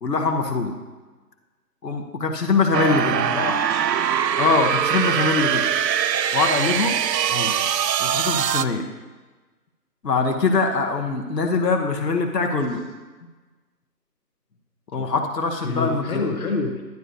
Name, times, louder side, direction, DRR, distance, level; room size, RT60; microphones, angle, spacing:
voice 1, 0.0-0.7 1.8-3.2 4.4-5.6 6.3-7.0 8.0-8.8 10.0-12.8 14.9-16.3, left 4 dB, 75° left, 2 dB, 1.4 m, -23 dB
sound 1, 2.7-8.7, right 9 dB, 80° right, 0.6 m, -22 dB
voice 2, 3.1-3.8 7.3-7.5 13.2-13.3 14.9-15.1 15.6-16.8, left 4 dB, 60° left, 2 dB, 1.3 m, -28 dB
12.0 x 9.5 x 2.7 m, 1.3 s
hypercardioid pair, 180°, 49 cm